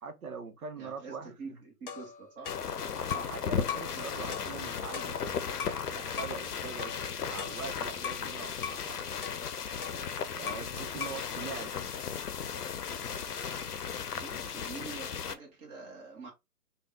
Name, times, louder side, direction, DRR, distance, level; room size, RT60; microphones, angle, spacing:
voice 1, 0.0-1.6 3.1-5.5 5.9-9.4 10.4-12.0, right 5 dB, 65° right, 0.8 m, -43 dB
voice 2, 0.8-2.5 14.1-16.3, right 4 dB, 15° right, 0.9 m, -46 dB
sound 1, 1.9-3.4 3.7-4.0 4.3-5.8 6.2-6.4 6.8-8.3 8.6-8.9 9.2-10.7 11.0-11.3, left 7 dB, 35° left, 0.9 m, -40 dB
sound 2, 2.4-15.3, left 7 dB, 80° left, 0.6 m, -36 dB
3.4 x 2.3 x 3.5 m
figure-of-eight pair, 125°, 46 cm